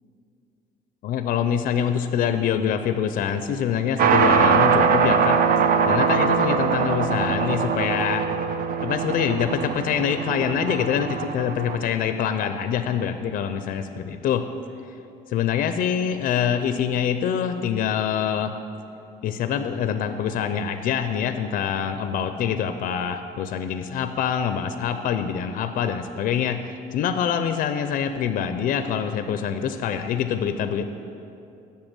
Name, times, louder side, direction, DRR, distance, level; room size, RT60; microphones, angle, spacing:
voice 1, 1.0-5.4 5.9-8.3 8.8-14.5 15.3-18.5 19.2-30.8, left 8 dB, 55° left, 9 dB, 0.4 m, -25 dB
sound 1, 4.0-11.8, right 6 dB, 60° right, 0.6 m, -22 dB
8.0 x 6.7 x 7.3 m, 2.7 s
cardioid pair, 155°, 17 cm